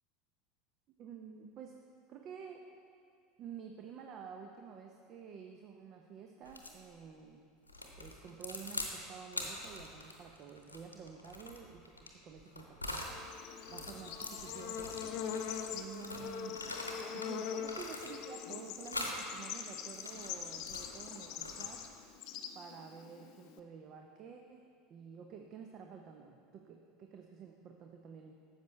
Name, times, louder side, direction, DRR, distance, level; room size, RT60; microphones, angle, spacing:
voice 1, 1.0-2.8 3.4-7.4 8.0-13.1 13.7-14.9 15.7-16.6 17.1-21.8 22.5-28.3, right 7 dB, 40° right, 3 dB, 0.6 m, -50 dB
sound 1, 6.5-6.8 7.7-9.0 9.3-13.2 13.6-17.3 17.6-18.4 18.9-19.2 19.8-21.9, left 2 dB, 90° left, 0.9 m, -44 dB
Bird / Insect, 13.0-23.6, left 8 dB, 50° left, 0.5 m, -43 dB
12.5 x 8.1 x 3.2 m, 2.4 s
figure-of-eight pair, 75°, 0 cm